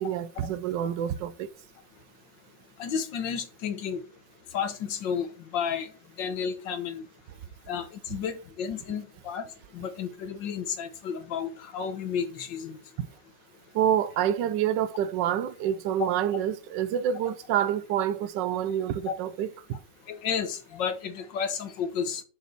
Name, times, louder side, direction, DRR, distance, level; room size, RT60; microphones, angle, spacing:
voice 1, 0.0-1.5 13.7-19.5, right 10 dB, 80° right, 1.3 m, -27 dB
voice 2, 2.8-4.0 4.5-5.9 6.2-7.0 7.7-9.5 9.7-12.8 16.0-16.1 19.1-19.2 20.1-22.2, left 7 dB, 80° left, 1.8 m, -32 dB
7.0 x 6.1 x 4.5 m
omnidirectional pair, 1.9 m